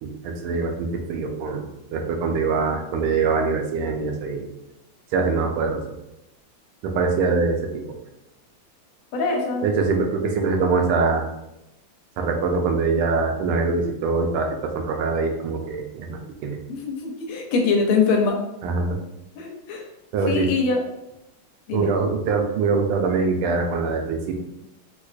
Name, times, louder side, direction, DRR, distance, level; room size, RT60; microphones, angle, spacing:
voice 1, 0.0-4.5 5.1-5.8 6.8-7.6 7.9-8.0 9.6-11.3 12.2-16.6 18.6-19.0 20.1-20.4 21.7-24.4, right 4 dB, 80° right, 3 dB, 1.4 m, -23 dB
voice 2, 9.1-9.6 16.7-18.4 19.3-19.9 20.3-20.8 21.7-21.9, left 4 dB, 80° left, 1 dB, 1.6 m, -23 dB
4.5 x 2.3 x 2.4 m, 0.87 s
omnidirectional pair, 2.4 m